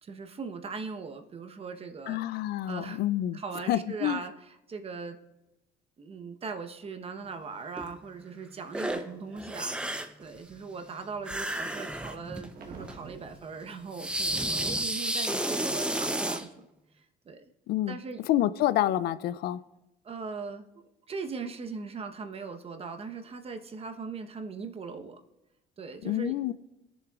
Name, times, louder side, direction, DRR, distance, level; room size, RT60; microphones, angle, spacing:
voice 1, 0.0-3.0 3.3-5.2 6.0-9.8 10.2-16.7 17.0-17.4 17.9-18.2 20.0-20.7 21.1-25.2 25.8-26.4, right 4 dB, 35° right, 1.0 m, -40 dB
voice 2, 2.1-3.4 3.7-4.2 17.7-18.0 18.3-19.6 26.0-26.5, left 13 dB, 70° left, 0.4 m, -27 dB
sound 1, 7.8-7.9 8.7-9.0 9.3-10.2 11.2-12.5 12.8-13.0 13.9-16.4, right 1 dB, 5° right, 0.7 m, -31 dB
sound 2, 9.1-9.4 9.9-14.7, right 4 dB, 60° right, 1.3 m, -52 dB
19.5 x 7.2 x 2.4 m
cardioid pair, 110°, 17 cm